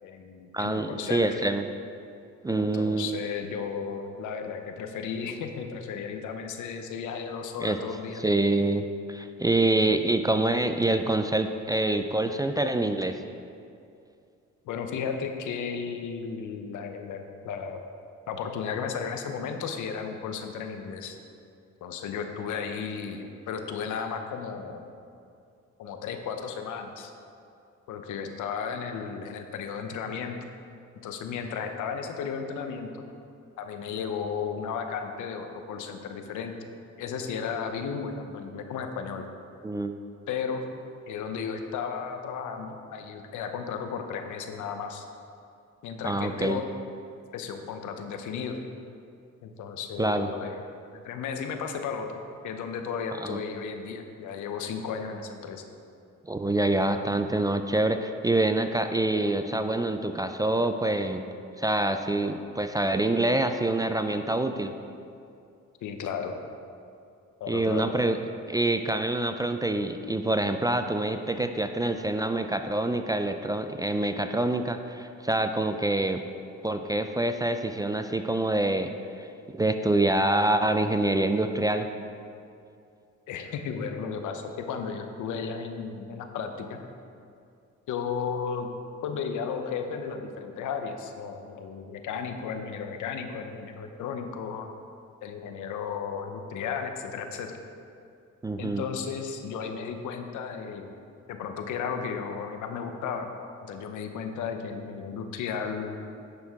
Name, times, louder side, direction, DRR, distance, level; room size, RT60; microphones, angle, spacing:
voice 1, 0.0-1.4 2.5-8.2 9.5-10.0 14.6-17.8 18.3-21.2 21.8-24.8 25.8-27.1 27.9-30.4 31.0-32.9 33.6-36.5 37.0-39.2 40.3-40.6 41.1-45.0 45.8-46.6 47.3-48.6 49.4-50.5 50.9-55.6 65.8-66.3 67.4-67.9 83.3-86.8 87.9-88.7 89.0-94.7 95.2-97.6 98.6-100.9 101.3-103.3 103.6-105.9, left 6 dB, 80° left, 6 dB, 0.8 m, -34 dB
voice 2, 0.5-1.6 2.4-3.2 7.6-7.8 8.2-13.2 39.6-39.9 46.0-46.6 50.0-50.3 53.2-53.4 56.3-61.2 61.6-64.7 67.5-68.2 68.5-76.2 76.6-78.9 79.2-79.3 79.5-81.9 98.4-98.8, right 2 dB, 15° right, 7 dB, 0.3 m, -26 dB
9.7 x 6.2 x 3.6 m, 2.5 s
cardioid pair, 90°, 30 cm